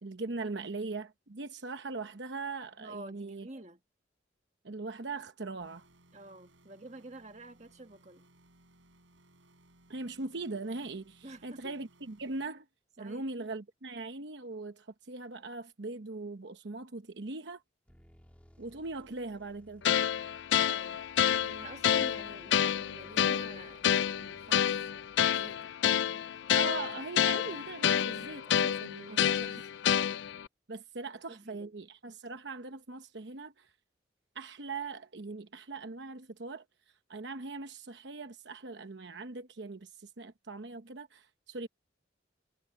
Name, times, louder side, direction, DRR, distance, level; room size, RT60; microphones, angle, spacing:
voice 1, 0.0-3.5 4.6-5.9 9.9-12.6 13.0-17.6 18.6-19.8 26.5-29.5 30.7-33.7 34.3-36.6 37.1-41.7, right 3 dB, 70° right, 1.0 m, -40 dB
voice 2, 2.8-3.8 6.1-8.3 11.2-11.8 13.0-13.3 20.6-21.0 21.4-26.3 29.1-29.6 31.3-31.7, right 2 dB, 35° right, 1.7 m, -50 dB
sound 1, 5.6-12.5, right 1 dB, 85° right, 5.0 m, -63 dB
sound 2, 17.9-25.8, equal, 5° left, 2.5 m, -61 dB
sound 3, 19.8-30.5, left 9 dB, 70° left, 0.4 m, -29 dB
head